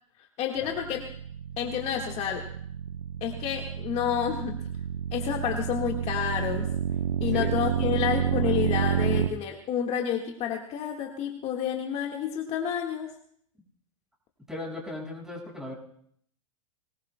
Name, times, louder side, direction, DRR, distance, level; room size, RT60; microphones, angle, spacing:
voice 1, 0.4-1.1 1.6-2.4 3.2-4.6 5.1-6.7 7.2-13.1, left 8 dB, 35° left, 2 dB, 1.6 m, -29 dB
sound 1, 0.6-9.3, right 8 dB, 85° right, 0.7 m, -30 dB
voice 2, 14.5-15.7, left 2 dB, 5° right, -1 dB, 5.5 m, -37 dB
22.5 x 20.0 x 2.2 m, 0.64 s
hypercardioid pair, 110°, 18 cm